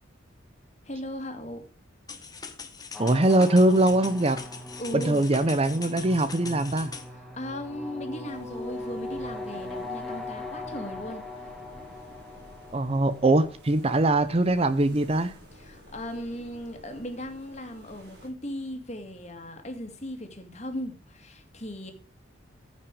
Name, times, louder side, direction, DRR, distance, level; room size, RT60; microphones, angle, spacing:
voice 1, 0.8-1.6 4.8-5.3 7.3-11.3 15.5-21.9, equal, 35° left, 5 dB, 2.3 m, -37 dB
sound 1, 2.1-7.1, left 5 dB, 20° left, 1.2 m, -42 dB
sound 2, 2.9-14.1, left 2 dB, ahead, 1.7 m, -40 dB
voice 2, 3.0-4.4 4.9-6.9 12.7-15.3, right 2 dB, 30° right, 13 dB, 0.6 m, -22 dB
sound 3, 8.3-18.3, equal, 55° right, 4.5 m, -51 dB
15.0 x 5.9 x 4.8 m, 0.38 s
head